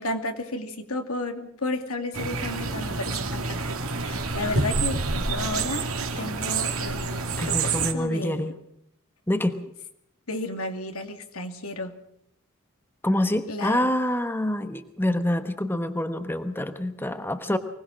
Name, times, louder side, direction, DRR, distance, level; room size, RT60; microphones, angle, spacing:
voice 1, 0.0-8.5 10.3-11.9 13.5-13.9, left 2 dB, 85° left, 6 dB, 2.4 m, -33 dB
sound 1, 2.1-7.9, right 4 dB, 70° right, 2.2 m, -28 dB
voice 2, 7.4-8.5 9.3-9.6 13.0-17.6, left 1 dB, 10° left, 8 dB, 1.1 m, -26 dB
24.5 x 19.0 x 6.3 m, 0.74 s
head